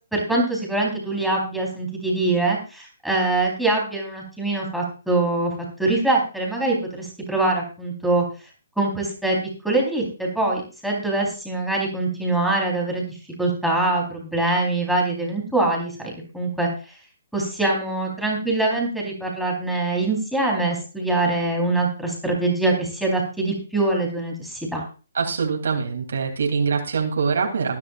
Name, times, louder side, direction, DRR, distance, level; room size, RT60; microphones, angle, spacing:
voice 1, 0.1-5.5 5.8-8.2 8.8-9.4 9.6-13.0 13.4-16.7 17.3-24.8, right 2 dB, ahead, -2 dB, 4.1 m, -23 dB
voice 2, 25.1-27.8, right 5 dB, 70° right, 1 dB, 3.1 m, -24 dB
19.5 x 10.5 x 2.5 m, 0.35 s
hypercardioid pair, 145°, 0 cm